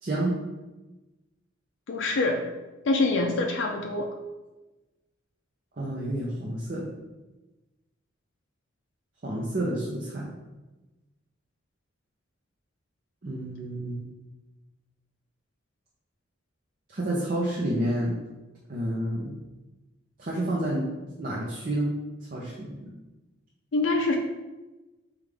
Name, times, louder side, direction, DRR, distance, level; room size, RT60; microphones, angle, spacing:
voice 1, 0.0-0.3 5.8-6.9 9.2-10.3 13.2-14.0 16.9-18.1 18.7-19.3 20.2-20.9 21.2-21.9 22.3-22.9, right 1 dB, 45° right, -5 dB, 0.6 m, -29 dB
voice 2, 1.9-2.4 2.8-4.2 23.7-24.2, left 2 dB, 60° left, 1 dB, 0.4 m, -25 dB
5.1 x 2.4 x 3.3 m, 1.1 s
head